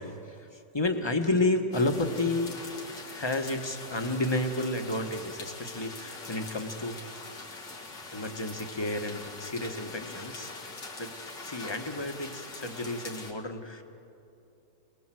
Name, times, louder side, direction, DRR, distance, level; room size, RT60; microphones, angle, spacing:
voice 1, 0.0-7.1 8.1-10.6 11.0-11.1 11.4-13.8, left 2 dB, 15° left, 5 dB, 1.3 m, -31 dB
sound 1, 1.7-13.3, left 3 dB, 80° left, 2.9 m, -43 dB
27.0 x 21.0 x 7.7 m, 2.7 s
omnidirectional pair, 1.9 m